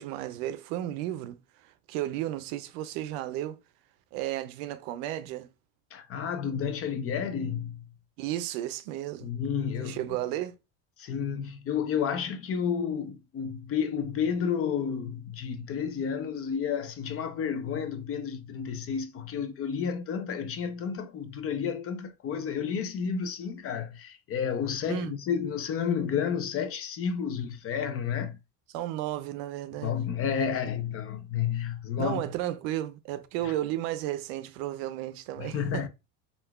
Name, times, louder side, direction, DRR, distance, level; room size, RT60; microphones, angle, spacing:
voice 1, 0.0-3.6 4.1-5.5 8.2-9.3 9.8-10.5 24.9-25.1 28.7-30.0 32.0-35.9, right 13 dB, 70° right, 0.6 m, -33 dB
voice 2, 5.9-7.8 9.2-10.0 11.0-28.4 29.8-32.2 33.4-33.5 35.4-35.9, left 7 dB, 35° left, 0.4 m, -31 dB
3.7 x 2.4 x 2.2 m
supercardioid pair, 100°, 42 cm